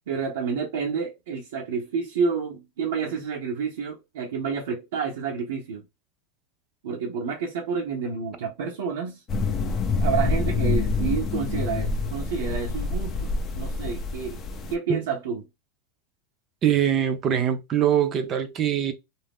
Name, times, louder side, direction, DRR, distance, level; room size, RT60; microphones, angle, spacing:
voice 1, 0.1-5.8 6.8-9.2 10.0-14.4 14.7-15.4, right 5 dB, 80° right, 0.8 m, -29 dB
sound 1, 9.3-14.7, left 3 dB, 30° left, 0.5 m, -26 dB
voice 2, 16.6-18.9, right 9 dB, 35° right, 0.6 m, -23 dB
2.5 x 2.1 x 3.5 m
supercardioid pair, 120°, 0 cm